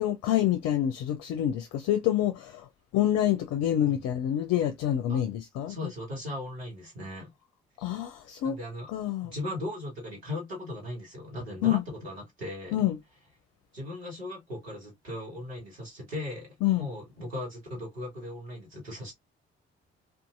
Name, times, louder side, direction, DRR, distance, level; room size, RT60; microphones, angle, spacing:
voice 1, 0.0-2.7 2.9-5.8 7.8-8.6 8.9-9.3 11.6-11.8 12.7-13.0 16.6-16.9, left 11 dB, 55° left, 0.5 m, -27 dB
voice 2, 5.7-7.3 8.4-8.9 9.2-12.8 13.7-16.5 16.8-19.1, left 1 dB, 90° right, 1.1 m, -38 dB
2.6 x 2.4 x 2.4 m
figure-of-eight pair, 40°, 31 cm